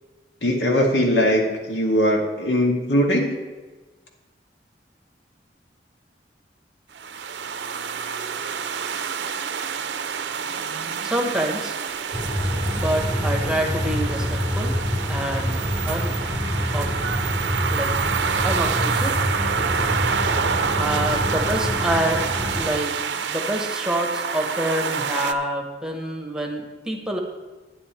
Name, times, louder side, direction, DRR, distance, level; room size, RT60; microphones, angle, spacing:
voice 1, 0.4-3.4, equal, 75° left, 1 dB, 2.0 m, -20 dB
sound 1, 7.0-25.3, right 6 dB, 75° right, 0.6 m, -27 dB
voice 2, 11.0-11.8 12.8-14.8 15.1-15.6 15.8-16.1 16.7-17.0 17.7-17.9 18.4-19.2 20.8-22.2 22.5-27.2, right 1 dB, 5° right, 2 dB, 1.2 m, -27 dB
sound 2, 12.1-22.7, equal, 30° left, 3.1 m, -26 dB
10.5 x 10.0 x 4.4 m, 1.2 s
head